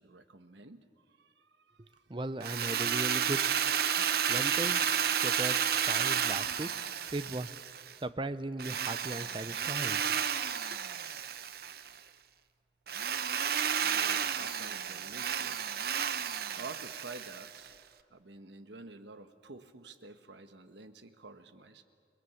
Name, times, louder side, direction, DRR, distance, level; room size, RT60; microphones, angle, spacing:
voice 1, 0.0-2.1 13.8-15.9 16.6-21.8, right 3 dB, 75° right, 8 dB, 1.3 m, -50 dB
voice 2, 2.1-3.4 4.3-4.8 5.1-7.6 8.0-10.0, right 2 dB, 25° right, 13 dB, 0.6 m, -37 dB
Drill, 2.4-7.9 8.6-11.9 12.9-17.7, right 8 dB, 55° right, 0.8 m, -32 dB
29.5 x 20.5 x 7.1 m, 2.4 s
head